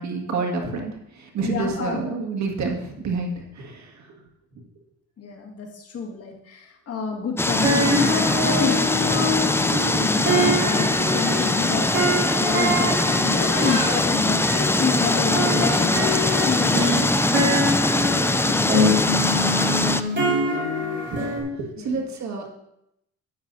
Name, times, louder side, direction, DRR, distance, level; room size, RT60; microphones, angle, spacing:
voice 1, 0.0-4.2 18.5-20.2 21.1-22.5, right 4 dB, 65° right, 1 dB, 2.0 m, -30 dB
voice 2, 1.4-2.1 5.2-17.1 17.8-18.2 21.8-22.0, left 5 dB, 50° left, 0 dB, 2.0 m, -29 dB
sound 1, 7.4-20.0, left 2 dB, 10° left, 0.4 m, -22 dB
sound 2, 7.6-14.0 14.4-21.4, equal, 35° right, 3.8 m, -25 dB
12.0 x 9.4 x 2.7 m, 0.80 s
cardioid pair, 90°, 30 cm